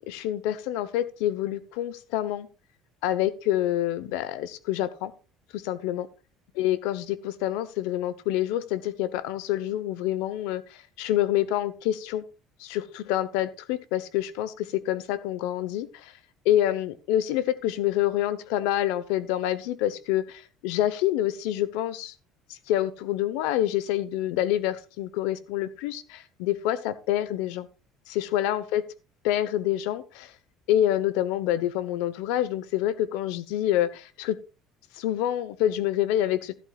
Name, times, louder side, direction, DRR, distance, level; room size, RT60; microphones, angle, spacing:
voice 1, 0.0-2.5 3.0-5.1 5.5-6.1 6.6-12.2 12.6-16.1 16.4-22.1 22.5-27.7 28.1-28.8 29.2-30.3 30.7-34.4 34.9-36.6, left 12 dB, 85° left, 0.9 m, -27 dB
13.0 x 11.5 x 2.4 m
cardioid pair, 170°, 0 cm